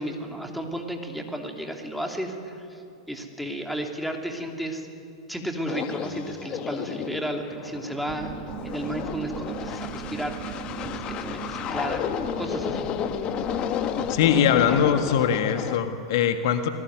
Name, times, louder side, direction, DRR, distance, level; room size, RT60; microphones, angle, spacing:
voice 1, 0.0-2.8 3.1-4.9 5.3-8.3 8.6-12.1 12.4-12.8, right 1 dB, ahead, 3 dB, 2.9 m, -33 dB
sound 1, 5.7-15.8, left 9 dB, 35° left, 1.4 m, -32 dB
sound 2, 8.1-15.4, right 7 dB, 35° right, 3.0 m, -38 dB
voice 2, 14.1-16.7, left 8 dB, 55° left, 8 dB, 1.6 m, -22 dB
27.5 x 19.5 x 9.4 m, 2.7 s
figure-of-eight pair, 95°, 3 cm